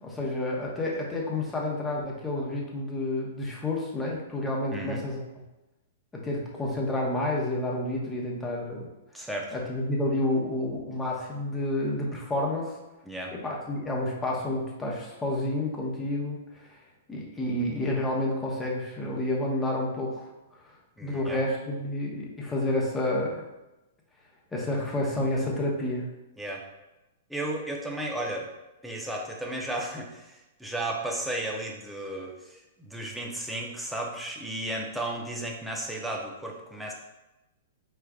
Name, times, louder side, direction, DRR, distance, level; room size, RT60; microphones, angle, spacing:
voice 1, 0.0-5.2 6.1-8.9 9.5-12.8 13.3-16.8 17.1-20.3 21.0-23.4 24.5-26.1, left 1 dB, 10° left, -3 dB, 1.0 m, -29 dB
voice 2, 4.7-5.0 9.1-9.5 13.1-13.3 21.0-21.4 26.4-26.6 27.3-28.5 28.8-36.9, right 1 dB, 5° right, -1 dB, 0.7 m, -34 dB
4.7 x 3.2 x 2.4 m, 0.98 s
hypercardioid pair, 125°, 0 cm